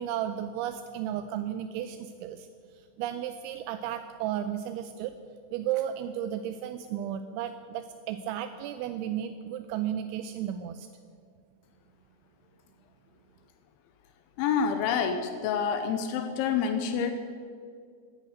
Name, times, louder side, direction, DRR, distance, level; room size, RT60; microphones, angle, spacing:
voice 1, 0.0-2.5 2.7-5.2 5.5-10.9, right 10 dB, 85° right, 10 dB, 2.9 m, -34 dB
voice 2, 14.4-17.1, left 7 dB, 85° left, 8 dB, 3.1 m, -27 dB
14.0 x 9.9 x 9.3 m, 2.2 s
omnidirectional pair, 5.4 m